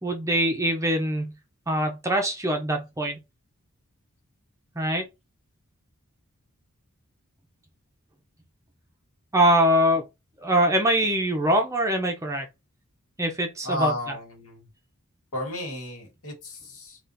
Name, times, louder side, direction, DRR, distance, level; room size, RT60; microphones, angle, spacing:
voice 1, 0.0-1.3 1.7-3.2 4.8-5.0 9.3-10.0 10.4-12.5 13.2-14.2, right 1 dB, 15° right, 0.6 m, -23 dB
voice 2, 13.6-14.6 15.3-17.0, left 1 dB, 80° left, 1.5 m, -33 dB
3.6 x 2.4 x 2.6 m
head